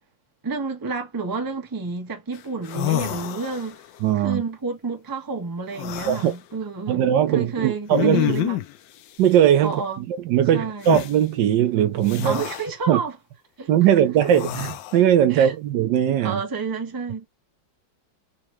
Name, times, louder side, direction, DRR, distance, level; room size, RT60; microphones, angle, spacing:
voice 1, 0.4-3.8 4.2-8.6 9.6-10.0 10.5-10.9 12.2-13.2 13.6-13.7 15.3-15.5 16.2-17.2, right 4 dB, 15° right, 0.7 m, -30 dB
sound 1, 2.3-2.4 2.6-3.9 5.7-6.3 7.9-8.8 10.8-11.1 12.1-12.7 14.2-15.0, left 15 dB, 80° left, 1.3 m, -27 dB
voice 2, 4.0-4.4 6.1-6.3 6.9-8.5 9.2-12.4 12.9-13.0 13.7-16.4, right 10 dB, 75° right, 1.3 m, -20 dB
3.8 x 2.9 x 3.0 m
omnidirectional pair, 2.0 m